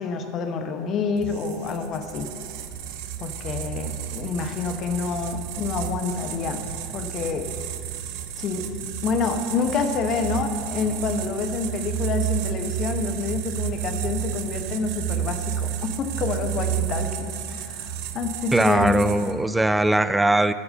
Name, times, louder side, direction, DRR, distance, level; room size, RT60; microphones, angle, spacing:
voice 1, 0.0-2.3 3.2-7.5 8.4-8.7 9.0-19.0, left 5 dB, 40° left, 6 dB, 1.0 m, -28 dB
sound 1, 1.2-19.5, right 10 dB, 55° right, 0.6 m, -31 dB
voice 2, 18.5-20.5, right 1 dB, 10° right, 13 dB, 0.3 m, -20 dB
12.5 x 4.8 x 6.5 m, 2.3 s
figure-of-eight pair, 80°, 0 cm